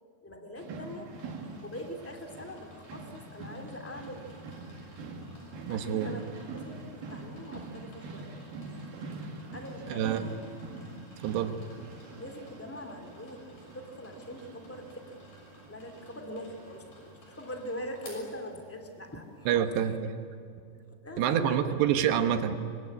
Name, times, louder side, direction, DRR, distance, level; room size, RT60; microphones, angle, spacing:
voice 1, 0.2-1.1 1.6-4.4 5.1-5.2 5.7-8.3 9.5-10.4 12.1-15.2 15.7-19.5 21.0-22.1, left 1 dB, 10° left, 3 dB, 0.7 m, -42 dB
sound 1, 0.6-19.6, right 3 dB, 60° right, 3.5 m, -45 dB
sound 2, 1.1-19.1, equal, 45° left, 7.9 m, -55 dB
voice 2, 5.7-6.1 9.9-10.3 11.2-11.6 19.5-20.2 21.2-22.5, right 9 dB, 75° right, 7 dB, 3.5 m, -27 dB
25.0 x 24.0 x 9.7 m, 2.5 s
omnidirectional pair, 5.1 m